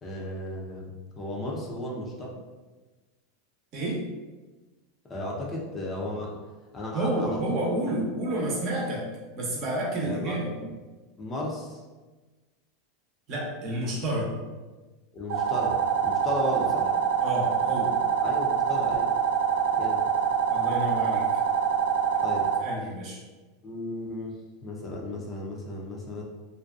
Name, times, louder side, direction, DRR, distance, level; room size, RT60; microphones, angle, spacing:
voice 1, 0.0-2.3 5.1-6.4 6.7-7.6 7.9-8.0 10.0-10.7 11.2-11.8 15.1-16.9 18.2-19.1 19.7-20.0 22.2-22.5 23.6-26.2, left 1 dB, 25° left, -2 dB, 0.5 m, -35 dB
voice 2, 6.9-9.1 9.3-10.5 13.3-14.3 17.2-17.9 20.5-21.2 22.6-23.2, right 1 dB, 50° right, -3 dB, 0.7 m, -29 dB
sound 1, 15.3-22.6, right 7 dB, 75° right, 0.4 m, -25 dB
2.5 x 2.2 x 2.4 m, 1.2 s
supercardioid pair, 120°, 0 cm